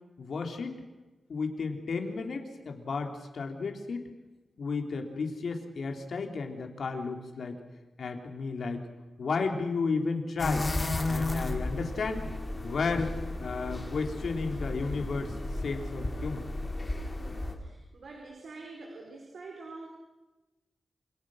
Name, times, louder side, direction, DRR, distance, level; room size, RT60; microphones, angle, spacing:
voice 1, 0.2-0.7 1.3-4.1 4.6-7.6 8.0-8.9 9.2-10.7 11.1-12.3 12.6-15.3 15.6-16.4, left 4 dB, 65° left, 4 dB, 3.4 m, -33 dB
sound 1, 10.4-17.5, left 2 dB, 20° left, 3.1 m, -33 dB
voice 2, 17.1-19.9, right 3 dB, 65° right, 1 dB, 4.7 m, -46 dB
27.5 x 27.0 x 6.5 m, 1.1 s
wide cardioid pair, 175°, 0 cm